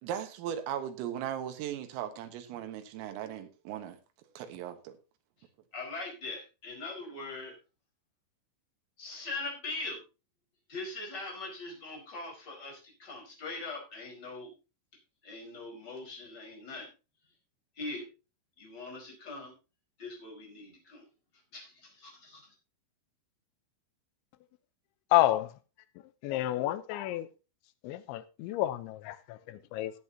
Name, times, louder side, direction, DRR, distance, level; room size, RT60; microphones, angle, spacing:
voice 1, 0.0-4.0 4.4-5.0, right 10 dB, 85° right, 4.0 m, -38 dB
voice 2, 5.7-7.5 9.0-10.0 10.7-14.5 15.2-16.9 17.8-18.0 18.6-19.5 20.0-21.0 21.5-22.5, left 3 dB, 20° left, 4.9 m, -41 dB
voice 3, 25.1-25.5 26.2-27.3 27.8-29.9, left 15 dB, 80° left, 3.0 m, -29 dB
17.5 x 8.4 x 2.9 m
omnidirectional pair, 5.8 m